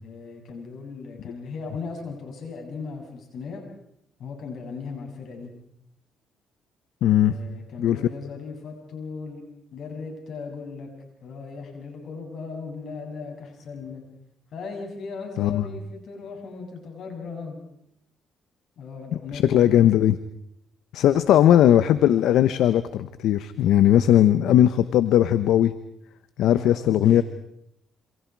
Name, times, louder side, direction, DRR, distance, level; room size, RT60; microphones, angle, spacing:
voice 1, 0.0-3.6 4.2-5.5 7.2-9.4 9.7-10.9 11.2-14.0 14.5-17.6 18.8-19.9 21.0-21.4 26.5-27.2, left 4 dB, 65° left, 2 dB, 7.6 m, -37 dB
voice 2, 7.0-7.3 7.8-8.0 15.4-15.7 19.3-20.2 20.9-25.7 26.4-27.2, left 11 dB, 80° left, 12 dB, 1.0 m, -18 dB
27.5 x 27.0 x 4.7 m, 0.77 s
cardioid pair, 90°, 0 cm